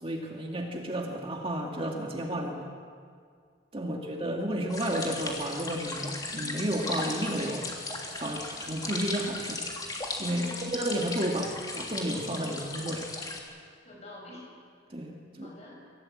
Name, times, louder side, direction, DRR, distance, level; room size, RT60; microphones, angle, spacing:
voice 1, 0.0-2.7 3.7-7.7 8.2-9.6 10.2-13.1 14.9-15.5, right 1 dB, 30° right, 1 dB, 2.0 m, -32 dB
voice 2, 3.8-4.2 10.2-10.7 13.8-14.5 15.0-15.9, left 1 dB, 35° left, -2 dB, 7.8 m, -48 dB
sound 1, 4.7-13.4, left 2 dB, 20° left, 3.0 m, -37 dB
25.0 x 17.0 x 8.7 m, 2.1 s
head